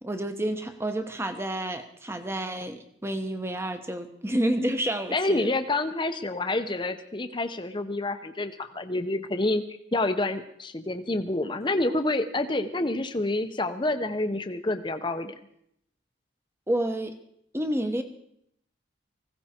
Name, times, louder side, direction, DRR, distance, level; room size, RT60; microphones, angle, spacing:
voice 1, 0.0-5.5 16.7-17.2 17.5-18.0, right 1 dB, 10° right, 8 dB, 1.0 m, -29 dB
voice 2, 5.1-9.6 9.9-15.3, left 2 dB, 25° left, 8 dB, 0.8 m, -28 dB
19.5 x 16.0 x 4.4 m, 0.74 s
head